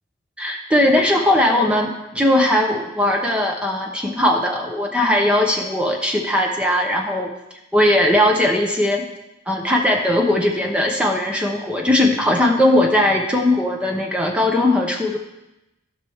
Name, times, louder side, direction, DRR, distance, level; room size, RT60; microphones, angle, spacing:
voice 1, 0.4-7.3 7.7-9.1 9.5-15.2, left 1 dB, 5° right, 0 dB, 0.9 m, -19 dB
17.0 x 5.9 x 3.5 m, 0.94 s
head